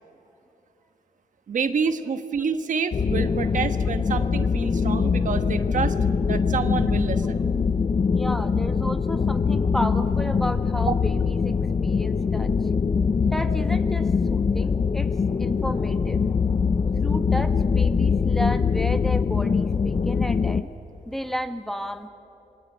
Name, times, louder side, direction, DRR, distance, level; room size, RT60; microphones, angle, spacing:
voice 1, 1.5-5.9 6.3-7.5 10.9-11.0, right 6 dB, 60° right, 9 dB, 1.3 m, -28 dB
sound 1, 2.9-20.6, left 5 dB, 35° left, 0.6 m, -23 dB
voice 2, 8.1-12.5 13.3-16.2 17.0-20.7 21.0-22.1, equal, ahead, 7 dB, 1.3 m, -32 dB
27.5 x 22.5 x 8.9 m, 2.9 s
cardioid pair, 105°, 15 cm